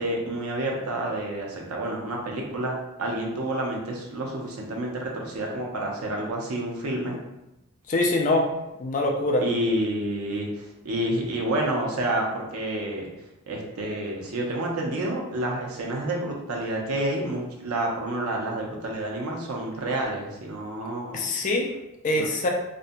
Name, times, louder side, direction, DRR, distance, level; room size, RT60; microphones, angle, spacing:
voice 1, 0.0-7.2 9.4-13.1 13.5-21.2 22.1-22.3, right 1 dB, 85° right, -1 dB, 0.6 m, -29 dB
voice 2, 7.9-8.5 8.8-9.4 21.1-21.7 22.0-22.5, left 2 dB, 35° left, 1 dB, 0.3 m, -23 dB
2.5 x 2.1 x 2.6 m, 0.91 s
head